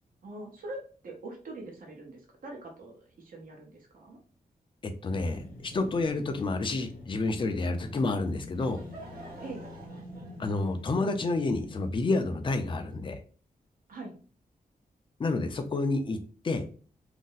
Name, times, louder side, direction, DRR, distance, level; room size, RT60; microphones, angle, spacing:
voice 1, 0.2-4.2 9.4-9.7 13.9-14.1, right 2 dB, 65° right, 1 dB, 0.9 m, -43 dB
voice 2, 4.8-8.8 10.4-13.2 15.2-16.2 16.4-16.6, left 3 dB, 35° left, 7 dB, 0.4 m, -29 dB
sound 1, 5.1-11.9, left 1 dB, 60° left, 0.9 m, -46 dB
Laughter / Crowd, 8.2-12.8, right 2 dB, 85° right, 1.2 m, -50 dB
2.6 x 2.0 x 3.8 m, 0.40 s
wide cardioid pair, 160°, 15 cm